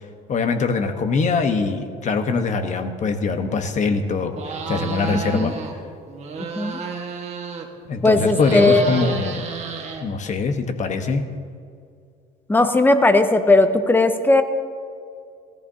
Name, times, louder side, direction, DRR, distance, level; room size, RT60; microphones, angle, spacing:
voice 1, 0.3-5.5 7.9-9.5 10.0-11.3, left 4 dB, 45° left, 6 dB, 1.2 m, -23 dB
sound 1, 4.3-5.8 6.1-7.9 8.2-10.4, right 5 dB, 40° right, 1.7 m, -31 dB
voice 2, 5.1-5.5 6.4-6.8 8.0-8.9 12.5-14.4, left 2 dB, 10° left, 8 dB, 0.9 m, -17 dB
19.5 x 14.0 x 2.8 m, 2.3 s
cardioid pair, 110°, 17 cm